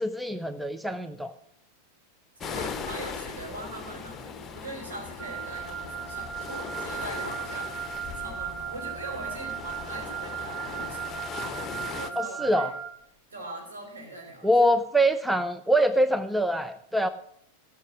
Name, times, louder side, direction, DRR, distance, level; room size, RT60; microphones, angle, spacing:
voice 1, 0.0-1.3 12.2-12.7 14.4-17.1, equal, 5° right, 11 dB, 0.5 m, -24 dB
sound 1, 2.4-12.1, left 6 dB, 20° left, 1.0 m, -39 dB
voice 2, 2.4-12.7 13.3-14.5, right 1 dB, 70° right, 1 dB, 5.0 m, -41 dB
Wind instrument woodwind instrument, 5.2-12.9, right 9 dB, 40° right, 2.8 m, -36 dB
16.5 x 6.1 x 6.1 m, 0.69 s
figure-of-eight pair, 90°, 0 cm